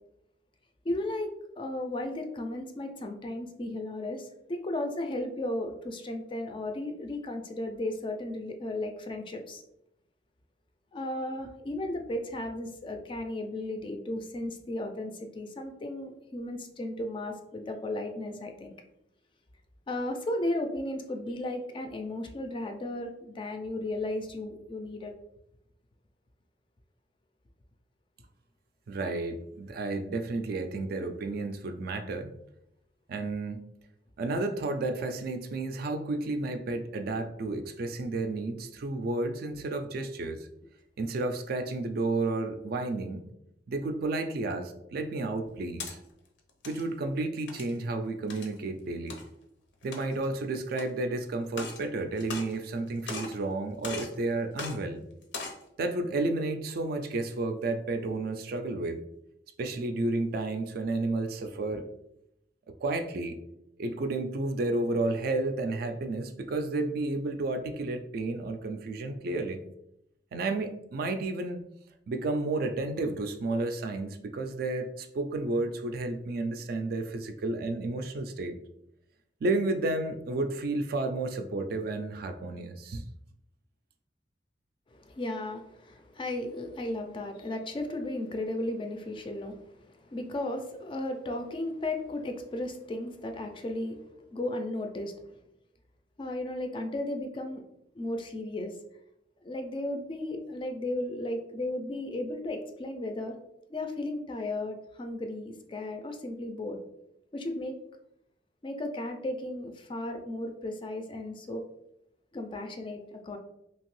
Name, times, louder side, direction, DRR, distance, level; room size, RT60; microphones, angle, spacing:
voice 1, 0.8-9.6 10.9-18.7 19.9-25.1 38.6-38.7 84.9-94.0 94.3-95.4 96.2-97.6 97.9-98.8 99.4-103.4 103.7-106.8 107.3-107.7 108.6-111.6 112.3-113.4, left 1 dB, 30° left, 5 dB, 0.3 m, -35 dB
voice 2, 28.9-32.4 33.1-33.7 34.2-40.5 41.0-43.3 43.7-46.0 46.7-49.2 49.8-55.0 55.8-59.0 59.6-61.9 62.8-63.4 63.8-69.6 70.3-71.6 72.1-78.6 79.4-83.0, right 2 dB, 55° right, 7 dB, 0.3 m, -31 dB
sound 1, 45.4-45.9 46.5-46.8 47.5-47.8 48.3-48.5 49.1-49.2 49.8-50.2 50.7-50.8 51.5-51.8 52.2-52.8 53.1-53.4 53.8-54.1 54.6-54.7 55.2-55.6, left 4 dB, 75° left, 0.6 m, -39 dB
2.9 x 2.6 x 3.0 m, 0.80 s
head